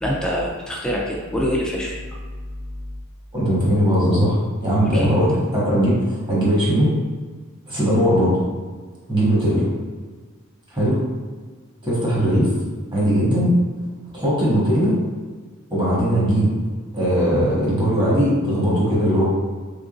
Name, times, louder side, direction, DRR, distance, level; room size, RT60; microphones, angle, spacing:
voice 1, 0.0-2.2 4.9-5.1, equal, 5° left, -3 dB, 0.4 m, -25 dB
voice 2, 3.3-6.9 7.7-8.4 9.1-9.7 10.7-11.0 11.8-12.5 12.9-13.5 14.1-14.9 15.7-16.5 16.9-19.3, equal, 25° right, -8 dB, 1.4 m, -19 dB
3.6 x 3.6 x 2.5 m, 1.4 s
head